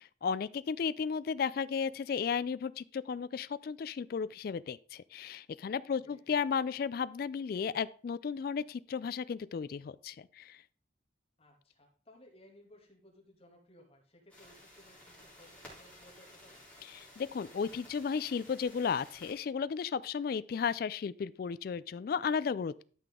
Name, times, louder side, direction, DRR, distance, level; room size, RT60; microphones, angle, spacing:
voice 1, 0.2-10.6 16.9-22.8, left 6 dB, 50° left, 0.3 m, -34 dB
voice 2, 11.4-16.6, left 1 dB, 30° left, 2.4 m, -60 dB
sound 1, 14.3-19.3, left 1 dB, 5° left, 3.3 m, -55 dB
12.5 x 5.9 x 3.7 m
head